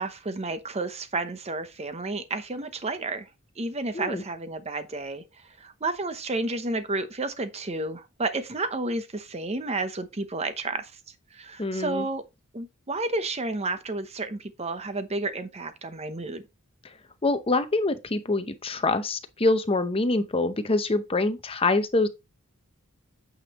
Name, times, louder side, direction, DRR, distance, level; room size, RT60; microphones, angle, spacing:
voice 1, 0.0-3.3 3.6-5.2 5.6-10.9 11.3-12.2 12.5-16.4, right 2 dB, 30° right, 0.8 m, -31 dB
voice 2, 11.6-12.1 17.2-22.1, left 2 dB, 25° left, 0.7 m, -25 dB
8.9 x 5.2 x 3.0 m
head